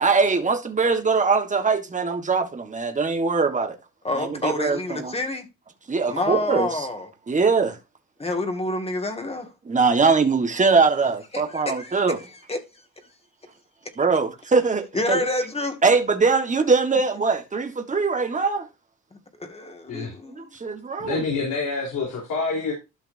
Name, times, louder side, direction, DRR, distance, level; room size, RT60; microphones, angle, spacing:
voice 1, 0.0-3.8 4.1-5.1 5.9-6.9 7.3-7.8 9.6-12.2 14.0-15.3 15.8-18.7 20.4-21.2, right 4 dB, 25° right, 1.6 m, -22 dB
voice 2, 4.0-5.5 6.0-7.1 8.2-9.5 11.3-12.6 14.9-15.8 19.4-20.6, left 2 dB, 20° left, 2.2 m, -28 dB
voice 3, 21.0-22.7, left 4 dB, 75° left, 3.9 m, -27 dB
12.5 x 5.7 x 2.7 m
cardioid pair, 90°, 30 cm